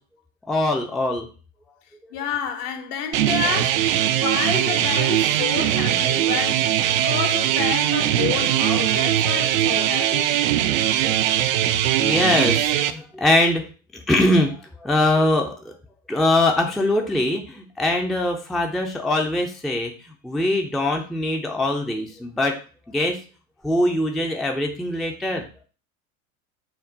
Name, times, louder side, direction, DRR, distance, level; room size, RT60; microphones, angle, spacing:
voice 1, 0.5-1.3 11.0-11.2 12.0-13.6 13.9-15.7 16.1-19.9 20.2-22.6 22.9-23.2 23.6-25.5, left 1 dB, ahead, 0.5 m, -22 dB
voice 2, 2.1-10.4, left 8 dB, 50° left, 0.9 m, -30 dB
sound 1, 3.1-12.9, right 11 dB, 65° right, 0.5 m, -21 dB
6.0 x 2.1 x 3.8 m
hypercardioid pair, 80°, 43 cm